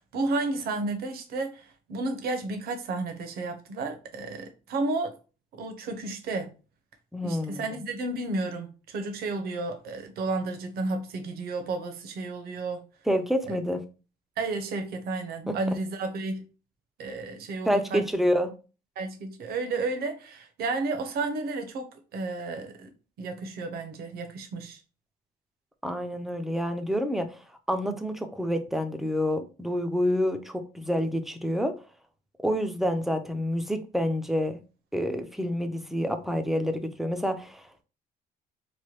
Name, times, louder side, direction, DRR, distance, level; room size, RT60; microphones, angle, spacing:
voice 1, 0.0-5.1 5.5-6.5 7.2-12.8 13.5-13.6 14.4-16.4 17.0-18.0 19.0-22.9 23.2-24.8, right 3 dB, 65° right, 0.7 m, -32 dB
voice 2, 7.1-7.8 13.1-13.8 15.5-15.6 17.6-18.5 25.8-31.7 32.4-34.6 34.9-37.8, equal, ahead, 0.4 m, -28 dB
3.0 x 2.2 x 3.0 m
cardioid pair, 110°, 17 cm